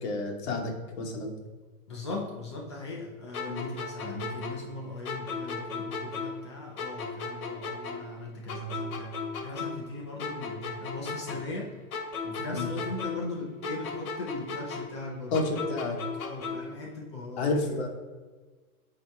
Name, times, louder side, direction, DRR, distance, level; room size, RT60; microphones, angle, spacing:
voice 1, 0.0-1.3 3.5-3.7 12.5-12.7 15.3-15.4 15.7-16.0 17.4-17.9, left 3 dB, 45° left, 2 dB, 1.3 m, -30 dB
voice 2, 1.9-11.8 12.2-17.9, left 2 dB, 20° left, -1 dB, 0.5 m, -39 dB
sound 1, 3.3-6.5 6.8-9.9 10.2-13.4 13.6-16.8, left 4 dB, 65° left, 1.2 m, -36 dB
7.6 x 2.9 x 4.5 m, 1.4 s
hypercardioid pair, 160°, 45 cm